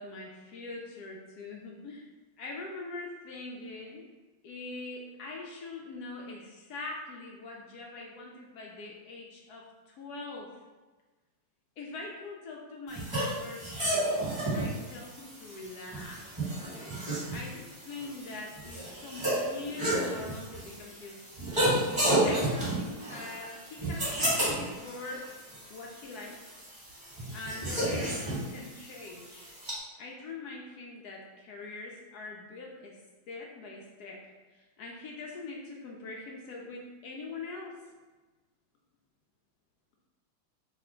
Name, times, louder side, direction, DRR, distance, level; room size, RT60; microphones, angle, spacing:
voice 1, 0.0-2.1 2.4-4.0 4.4-10.5 11.8-16.2 17.3-21.2 22.2-25.3 25.7-26.4 27.3-29.5 30.0-33.0 33.3-34.2 34.5-37.8, left 3 dB, 85° left, -1 dB, 0.8 m, -43 dB
sound 1, 12.9-29.7, right 1 dB, 15° right, 1.3 m, -32 dB
3.3 x 2.4 x 4.3 m, 1.3 s
omnidirectional pair, 2.2 m